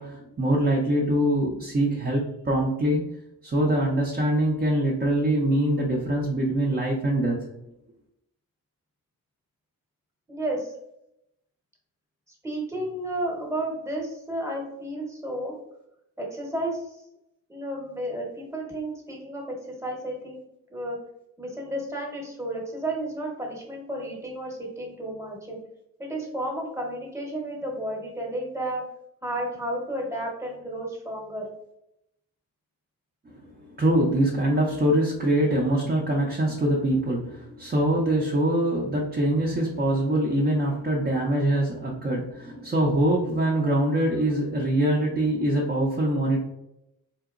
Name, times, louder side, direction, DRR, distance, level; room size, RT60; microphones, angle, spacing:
voice 1, 0.0-3.1 3.4-7.4 33.3-46.4, right 1 dB, 25° right, -3 dB, 0.6 m, -24 dB
voice 2, 10.3-10.7 12.4-15.6 16.2-17.0 17.5-19.5 19.8-20.4 20.7-21.0 21.4-25.6 26.0-28.8 29.2-31.5, right 1 dB, 5° right, -1 dB, 1.0 m, -32 dB
4.2 x 2.8 x 2.4 m, 0.82 s
wide cardioid pair, 135°, 37 cm